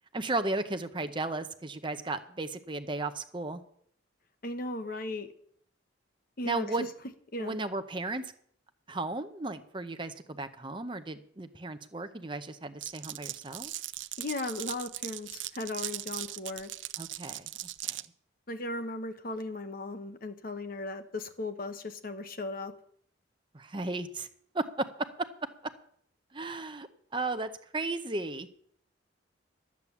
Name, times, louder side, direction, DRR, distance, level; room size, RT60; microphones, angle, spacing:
voice 1, 0.1-3.6 6.4-6.9 7.4-8.3 8.9-13.7 17.0-17.5 23.5-24.3 24.5-25.3 25.6-25.7 26.3-26.9 27.1-28.5, right 2 dB, 25° right, 9 dB, 0.7 m, -35 dB
voice 2, 4.4-5.3 6.4-6.9 7.3-7.5 14.2-16.7 18.5-22.7, left 2 dB, 45° left, 9 dB, 1.0 m, -36 dB
Glass, 12.8-18.1, right 15 dB, 70° right, 0.5 m, -39 dB
12.5 x 8.5 x 7.2 m, 0.64 s
head